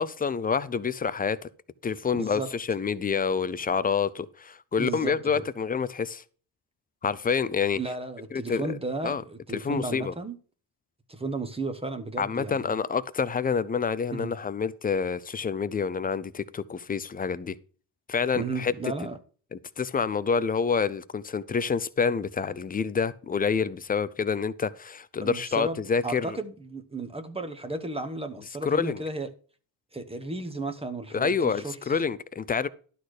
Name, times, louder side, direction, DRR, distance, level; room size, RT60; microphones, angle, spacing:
voice 1, 0.0-1.4 1.8-6.2 7.0-7.8 8.3-8.8 9.0-9.2 9.5-10.1 12.2-17.6 18.1-18.7 19.5-26.4 28.6-29.0 31.1-32.7, left 6 dB, 20° left, 0.4 m, -27 dB
voice 2, 2.1-2.5 4.8-5.4 7.7-10.4 11.1-12.7 14.1-14.4 18.3-19.2 25.2-25.8 26.0-29.3 29.9-31.9, right 3 dB, 15° right, 0.9 m, -34 dB
11.5 x 4.3 x 6.4 m
cardioid pair, 120°, 43 cm